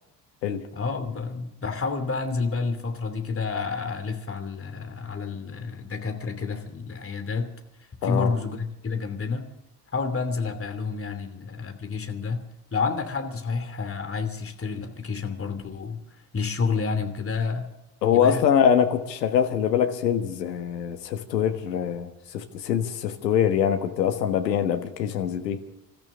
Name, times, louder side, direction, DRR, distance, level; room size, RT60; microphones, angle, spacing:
voice 1, 0.7-7.5 8.0-9.5 9.9-12.4 12.7-16.0 16.3-17.7 18.1-18.5, left 4 dB, 25° left, 6 dB, 2.9 m, -29 dB
voice 2, 18.0-25.6, left 8 dB, 80° left, 7 dB, 1.5 m, -24 dB
27.0 x 14.0 x 3.8 m, 0.90 s
figure-of-eight pair, 50°, 49 cm